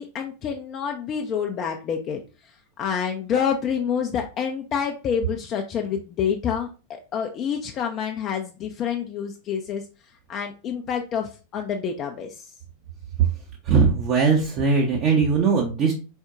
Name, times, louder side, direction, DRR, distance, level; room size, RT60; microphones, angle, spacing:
voice 1, 0.0-9.9 10.3-12.5, left 7 dB, 30° left, 3 dB, 0.5 m, -28 dB
voice 2, 13.7-15.9, right 5 dB, 40° right, -1 dB, 0.9 m, -20 dB
4.4 x 4.4 x 2.4 m, 0.33 s
figure-of-eight pair, 90°, 0 cm